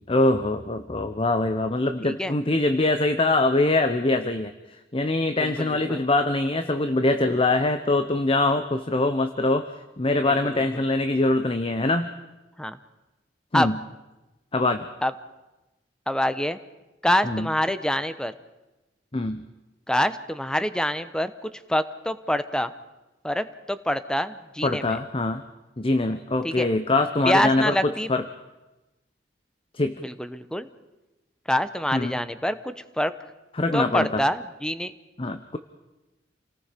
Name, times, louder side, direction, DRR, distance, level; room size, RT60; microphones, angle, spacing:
voice 1, 0.1-4.5 4.9-9.7 10.0-12.1 13.5-13.8 14.5-14.9 17.2-17.5 19.1-19.4 24.6-25.4 25.8-28.2 29.7-30.0 31.9-32.2 33.5-34.2 35.2-35.6, left 2 dB, 30° left, 9 dB, 0.8 m, -23 dB
voice 2, 2.0-2.3 5.4-6.0 10.2-10.6 12.6-12.8 13.5-13.7 15.0-15.1 16.1-16.6 17.0-18.3 19.9-22.7 23.2-25.0 26.4-26.7 27.2-28.1 30.0-30.7 31.5-33.1 33.7-34.9, equal, 5° left, 12 dB, 0.9 m, -26 dB
29.0 x 19.0 x 5.2 m, 1.0 s
head